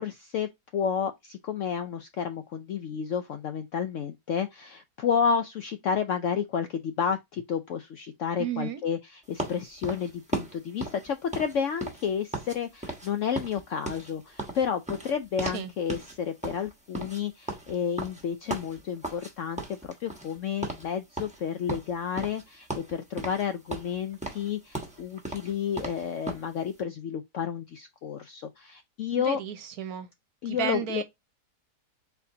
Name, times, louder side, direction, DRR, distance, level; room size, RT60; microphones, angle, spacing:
voice 1, 0.0-9.0 9.3-29.4 30.4-31.0, left 7 dB, 70° left, 0.7 m, -31 dB
voice 2, 8.4-8.8 15.4-15.7 29.2-30.1 30.4-31.0, right 9 dB, 65° right, 1.2 m, -33 dB
sound 1, 9.4-12.6 12.8-13.1 13.3-15.6 15.9-16.1 16.4-19.3 19.6-20.4 20.6-20.9 21.2-22.4 22.7-23.4 23.7-26.5, right 2 dB, 5° right, 1.0 m, -36 dB
4.3 x 4.1 x 2.7 m
omnidirectional pair, 1.8 m